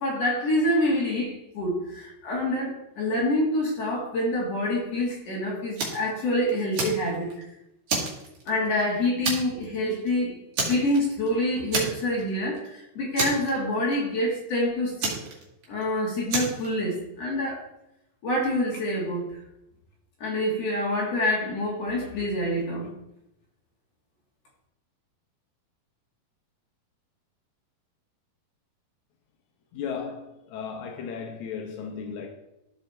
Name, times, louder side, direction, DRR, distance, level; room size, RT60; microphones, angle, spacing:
voice 1, 0.0-7.3 8.5-10.4 10.7-15.3 15.7-17.6 18.2-19.3 20.2-22.9, left 1 dB, 50° left, -3 dB, 2.9 m, -26 dB
Fire, 5.8-6.1 6.5-7.4 7.9-8.8 9.2-9.7 9.9-10.1 10.5-11.3 11.7-12.3 12.6-12.7 13.2-14.0 15.0-15.8 16.3-16.7, right 3 dB, 60° right, 3.6 m, -29 dB
voice 2, 29.7-32.3, left 6 dB, 80° left, 3 dB, 1.7 m, -35 dB
13.5 x 4.8 x 4.4 m, 0.87 s
omnidirectional pair, 4.4 m